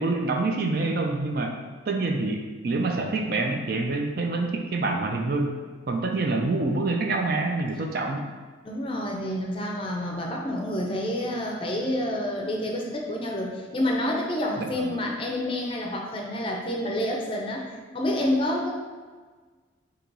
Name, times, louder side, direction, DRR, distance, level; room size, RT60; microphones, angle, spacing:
voice 1, 0.0-1.5 1.9-5.6 5.9-8.2 14.6-14.9, right 3 dB, 50° right, 3 dB, 0.4 m, -26 dB
voice 2, 8.6-17.7 17.9-18.7, left 1 dB, 25° left, 0 dB, 0.5 m, -28 dB
3.9 x 2.9 x 4.6 m, 1.4 s
head